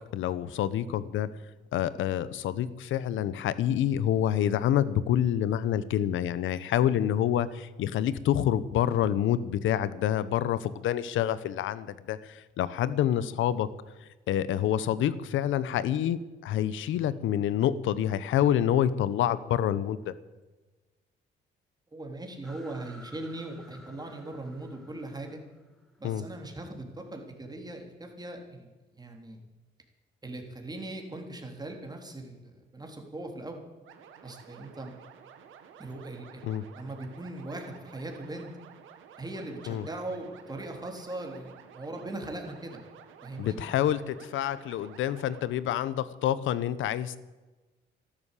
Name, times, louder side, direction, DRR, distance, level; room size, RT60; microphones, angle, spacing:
voice 1, 0.1-1.3 1.7-13.7 14.3-20.1 26.0-26.2 36.4-36.6 39.7-39.8 43.4-47.2, left 10 dB, 80° left, 17 dB, 0.9 m, -27 dB
voice 2, 21.9-25.4 26.0-28.7 28.9-29.4 30.2-32.4 32.7-33.6 34.2-34.9 35.8-38.5 39.2-42.8 43.2-43.6, right 2 dB, 20° right, 3 dB, 3.5 m, -40 dB
sound 1, 22.4-27.0, equal, 5° left, 4.5 m, -54 dB
sound 2, 33.8-45.5, right 8 dB, 85° right, 1.7 m, -52 dB
13.0 x 12.0 x 8.4 m, 1.2 s
cardioid pair, 90°, 20 cm